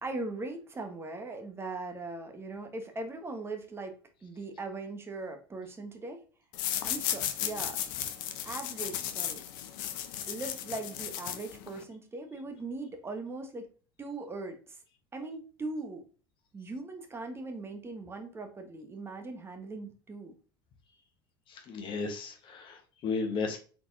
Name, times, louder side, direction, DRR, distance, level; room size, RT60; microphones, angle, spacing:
voice 1, 0.0-6.2 6.8-7.8 8.4-9.4 10.3-13.7 14.0-14.8 15.1-16.0 16.5-20.3, right 3 dB, 20° right, 4 dB, 1.2 m, -40 dB
sound 1, 6.5-11.8, left 11 dB, 65° left, 0.7 m, -35 dB
voice 2, 21.5-23.6, left 4 dB, 45° left, 4 dB, 1.1 m, -34 dB
4.3 x 4.1 x 2.7 m, 0.38 s
hypercardioid pair, 75°, 12 cm